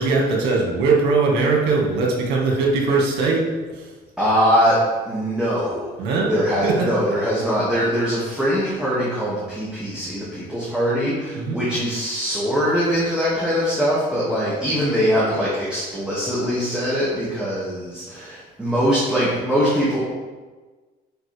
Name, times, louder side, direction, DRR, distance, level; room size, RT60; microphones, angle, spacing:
voice 1, 0.0-3.9 6.0-6.3 6.6-6.9 11.3-11.6, right 3 dB, 85° right, -1 dB, 1.9 m, -20 dB
voice 2, 4.2-4.8 5.1-5.9 6.3-20.0, equal, 5° right, -9 dB, 2.3 m, -22 dB
10.5 x 5.1 x 3.5 m, 1.3 s
cardioid pair, 110°, 17 cm